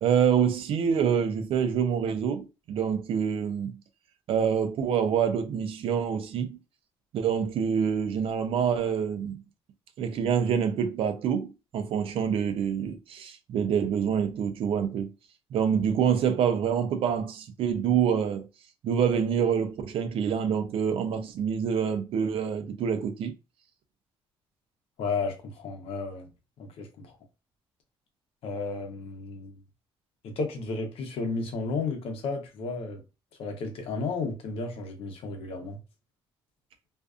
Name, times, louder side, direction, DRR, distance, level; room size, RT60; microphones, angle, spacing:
voice 1, 0.0-3.7 4.3-6.6 7.1-9.4 10.0-15.1 15.5-18.5 18.8-23.3, right 7 dB, 70° right, 0.5 m, -26 dB
voice 2, 25.0-26.3 26.6-27.1 28.4-29.6 30.2-33.0 33.4-35.8, left 4 dB, 75° left, 0.8 m, -33 dB
2.5 x 2.4 x 2.4 m
cardioid pair, 85°, 10 cm